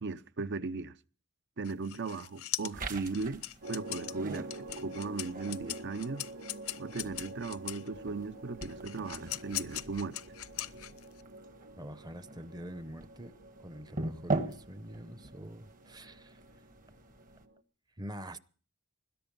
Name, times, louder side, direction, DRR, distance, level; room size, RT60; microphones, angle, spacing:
voice 1, 0.0-1.0 1.6-4.5 4.8-6.3 6.8-10.2, right 4 dB, 55° right, 0.8 m, -37 dB
sound 1, 1.6-7.9 8.6-11.2, left 15 dB, 75° left, 0.7 m, -40 dB
sound 2, 2.7-17.5, right 2 dB, 40° right, 1.5 m, -43 dB
sound 3, 3.6-17.6, right 2 dB, 85° right, 1.5 m, -49 dB
voice 2, 11.8-16.4 18.0-18.4, equal, 20° right, 0.8 m, -45 dB
21.0 x 11.0 x 5.3 m
head